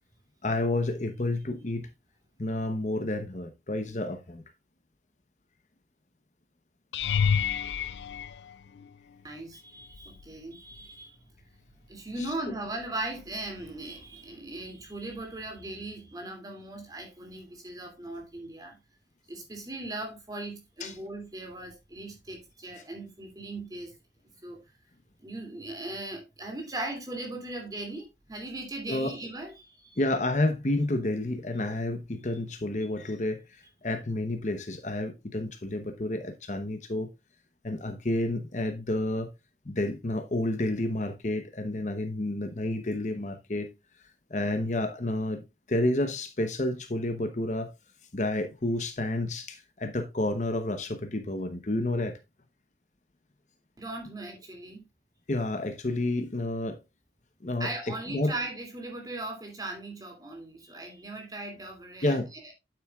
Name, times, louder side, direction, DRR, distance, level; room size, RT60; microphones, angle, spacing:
voice 1, 0.4-1.9 2.4-4.4 12.2-12.3 20.8-20.9 28.9-29.1 30.0-37.1 37.6-39.3 39.6-43.7 44.3-47.7 48.1-52.2 55.3-56.8 57.4-57.7 58.1-58.3 62.0-62.3, left 1 dB, 40° left, 0.9 m, -30 dB
sound 1, 6.9-9.2 9.9-10.3 10.7-10.9 15.2-15.3, left 7 dB, 75° left, 0.4 m, -29 dB
voice 2, 9.2-11.3 11.9-18.8 19.3-23.9 24.4-24.6 25.2-30.0 53.8-54.8 57.6-62.5, right 2 dB, 20° right, 2.7 m, -38 dB
9.0 x 8.0 x 2.4 m
head